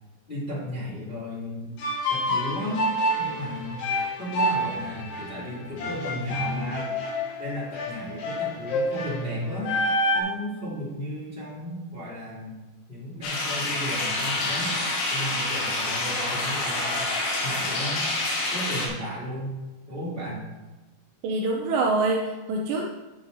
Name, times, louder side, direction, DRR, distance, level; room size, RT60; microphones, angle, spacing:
voice 1, 0.3-1.7 2.1-2.8 3.2-3.9 4.2-7.0 7.4-9.7 10.1-12.5 12.9-14.8 15.1-17.0 17.4-18.1 18.5-19.5 19.9-20.4, equal, 15° left, -8 dB, 1.9 m, -34 dB
sound 1, 1.8-10.2, left 1 dB, 65° left, 3.4 m, -28 dB
sound 2, 13.2-18.9, left 2 dB, 85° left, 4.1 m, -27 dB
voice 2, 21.2-22.9, right 3 dB, 80° right, 0 dB, 2.6 m, -25 dB
9.5 x 8.6 x 2.7 m, 1.1 s
omnidirectional pair, 5.5 m